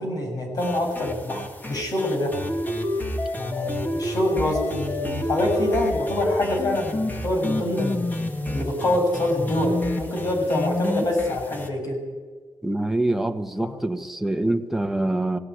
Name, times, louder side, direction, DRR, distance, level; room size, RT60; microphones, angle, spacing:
voice 1, 0.0-2.4 3.4-8.1 8.5-12.0 13.6-13.8, left 1 dB, 55° left, 1 dB, 7.4 m, -25 dB
sound 1, 0.6-11.7, left 1 dB, 25° left, 2.3 m, -29 dB
voice 2, 12.6-15.4, right 1 dB, 5° right, 5 dB, 1.5 m, -25 dB
18.5 x 17.5 x 9.6 m, 1.5 s
wide cardioid pair, 105°, 7 cm